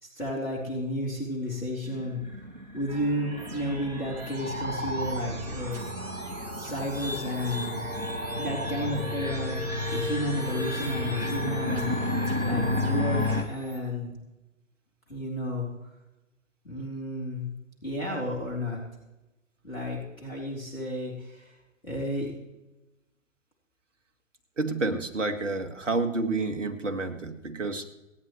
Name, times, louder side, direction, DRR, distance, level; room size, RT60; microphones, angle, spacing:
voice 1, 0.0-2.2 2.7-6.0 6.5-7.8 8.4-12.1 12.4-14.1 15.1-15.9 16.6-17.5 17.8-18.8 19.6-21.6 21.8-22.3, left 1 dB, 80° left, -2 dB, 3.7 m, -32 dB
sound 1, 1.9-13.4, left 1 dB, 90° right, 2.7 m, -32 dB
sound 2, 2.9-13.8, right 2 dB, 15° right, 2.1 m, -44 dB
voice 2, 24.6-27.9, right 3 dB, 65° right, 8 dB, 1.9 m, -29 dB
26.5 x 9.5 x 3.1 m, 1.0 s
figure-of-eight pair, 130°, 39 cm